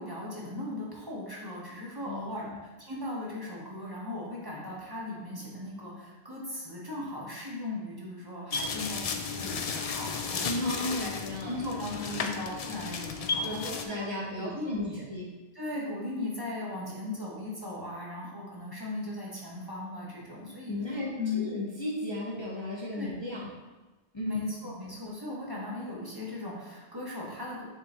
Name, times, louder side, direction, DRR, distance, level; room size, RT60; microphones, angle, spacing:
voice 1, 0.0-15.1 15.5-20.7 21.2-21.4 22.9-23.1 24.2-27.6, left 2 dB, 25° right, -5 dB, 1.2 m, -38 dB
voice 2, 2.0-2.6 10.4-11.6 13.4-14.8 15.1-15.3 20.7-23.5 24.1-24.4, left 1 dB, 30° left, -5 dB, 0.8 m, -35 dB
sound 1, 8.5-13.8, left 5 dB, 50° left, 0.5 m, -34 dB
6.9 x 5.0 x 2.9 m, 1.2 s
omnidirectional pair, 1.0 m